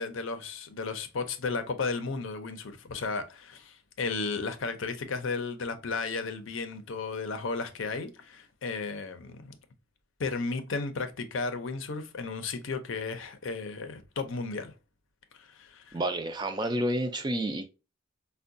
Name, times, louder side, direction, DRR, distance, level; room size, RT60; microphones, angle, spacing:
voice 1, 0.0-9.4 10.2-14.7 15.4-16.0, left 4 dB, 65° left, 0.5 m, -34 dB
voice 2, 15.9-17.7, right 1 dB, 20° right, 0.3 m, -30 dB
4.5 x 2.2 x 2.5 m
head